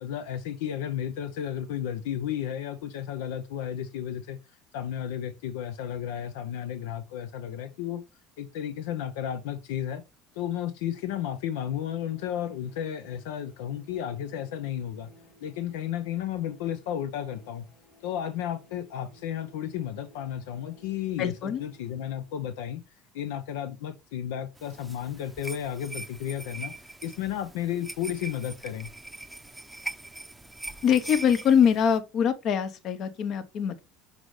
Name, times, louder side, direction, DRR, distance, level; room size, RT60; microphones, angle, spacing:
voice 1, 0.0-4.4 4.7-8.0 8.4-10.0 10.4-15.1 15.4-17.6 18.0-22.8 23.1-26.7 27.0-28.9, left 10 dB, 90° left, 0.6 m, -33 dB
sound 1, 10.9-22.8, equal, 75° left, 3.8 m, -58 dB
voice 2, 21.2-21.6 30.8-33.8, left 8 dB, 55° left, 1.0 m, -23 dB
sound 2, 24.6-32.0, right 2 dB, 5° right, 0.6 m, -42 dB
6.1 x 5.1 x 3.2 m
supercardioid pair, 105°, 0 cm